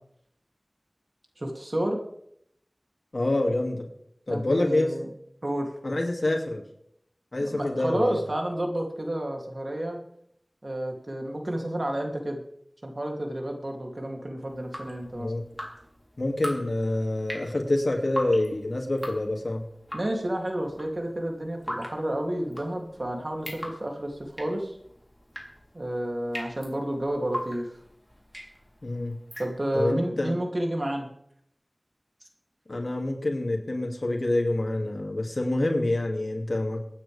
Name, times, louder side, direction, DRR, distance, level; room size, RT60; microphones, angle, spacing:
voice 1, 1.4-2.0 4.3-5.1 5.4-5.7 7.4-10.0 10.6-12.4 12.8-15.3 19.9-24.8 25.7-27.7 29.4-31.1, right 1 dB, 60° right, 1 dB, 2.9 m, -30 dB
voice 2, 3.1-3.9 4.3-4.9 5.8-6.6 7.3-8.2 15.2-15.4 16.2-19.6 28.8-29.2 29.7-30.4 32.7-36.8, left 1 dB, 75° left, 2 dB, 2.5 m, -27 dB
Drip, 14.5-29.9, equal, ahead, 3.6 m, -40 dB
24.5 x 9.3 x 3.5 m, 0.72 s
wide cardioid pair, 45°, 0 cm